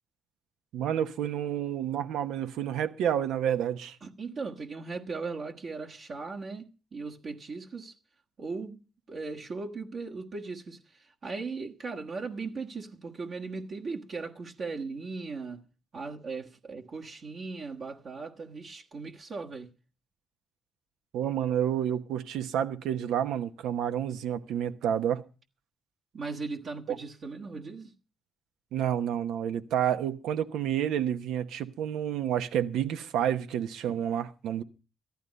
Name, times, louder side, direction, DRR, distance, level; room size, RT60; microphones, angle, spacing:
voice 1, 0.7-4.0 21.1-25.2 26.9-27.0 28.7-34.6, right 10 dB, 85° right, 1.1 m, -29 dB
voice 2, 4.0-7.9 8.4-15.6 15.9-19.7 26.1-27.9 33.9-34.0, right 4 dB, 50° right, 1.4 m, -38 dB
14.0 x 12.0 x 5.3 m
cardioid pair, 90°, 0 cm